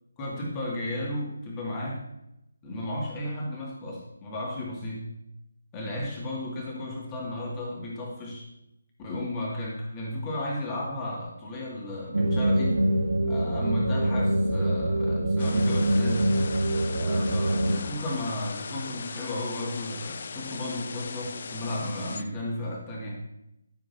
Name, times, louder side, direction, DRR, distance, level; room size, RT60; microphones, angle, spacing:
voice 1, 0.2-2.0 2.6-5.1 5.7-8.5 9.0-12.8 13.2-16.4 16.9-23.2, left 1 dB, 15° left, -3 dB, 2.4 m, -34 dB
sound 1, 12.1-17.8, right 1 dB, 60° right, 1.0 m, -24 dB
sound 2, 15.4-22.2, left 5 dB, 40° left, 0.5 m, -39 dB
14.0 x 7.3 x 2.8 m, 0.84 s
figure-of-eight pair, 150°, 0 cm